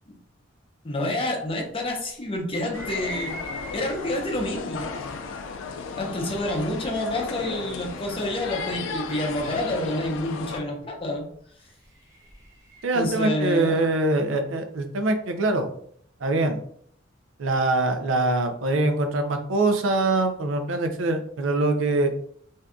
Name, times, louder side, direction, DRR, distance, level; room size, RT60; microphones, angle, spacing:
voice 1, 0.8-3.4 3.7-4.9 5.9-11.3 12.9-13.8, left 1 dB, 30° left, 0 dB, 0.6 m, -28 dB
sound 1, 2.6-4.3 5.1-5.2 6.5-9.4 11.5-13.2, right 1 dB, 20° right, 0.7 m, -42 dB
sound 2, 2.7-10.6, left 4 dB, 85° left, 0.4 m, -35 dB
voice 2, 12.8-15.7 16.2-16.6 17.4-22.1, right 2 dB, 90° right, 6 dB, 0.5 m, -23 dB
2.7 x 2.3 x 3.6 m, 0.63 s
head